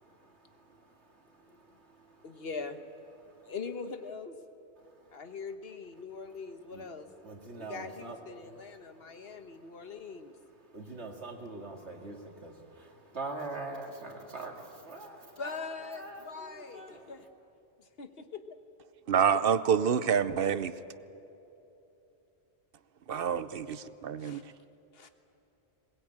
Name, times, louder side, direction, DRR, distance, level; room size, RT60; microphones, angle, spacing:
voice 1, 0.0-2.3 3.2-3.5 4.8-5.2 6.7-6.9 7.2-8.2 8.5-8.6 8.9-9.9 10.7-15.6 15.9-17.1, right 3 dB, 85° right, 2.5 m, -44 dB
voice 2, 2.2-2.8 3.4-4.4 5.1-7.1 7.5-10.3 15.3-17.3 17.8-18.4 23.8-24.5 24.9-25.1, left 4 dB, 65° left, 1.4 m, -42 dB
voice 3, 19.1-20.8 23.1-24.4, right 7 dB, 60° right, 0.9 m, -27 dB
21.5 x 20.0 x 8.8 m
omnidirectional pair, 1.1 m